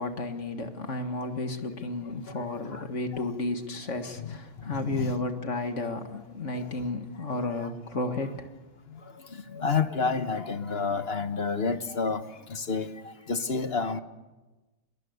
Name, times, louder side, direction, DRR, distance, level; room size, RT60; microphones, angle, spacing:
voice 1, 0.0-8.5 8.9-9.0 9.5-9.6, left 2 dB, 75° left, 2.2 m, -33 dB
voice 2, 2.5-2.8 3.1-3.2 4.2-5.1 6.5-6.7 7.6-7.7 9.3-12.2 12.5-14.0, left 5 dB, 55° left, 1.5 m, -30 dB
26.5 x 22.0 x 8.1 m
omnidirectional pair, 1.2 m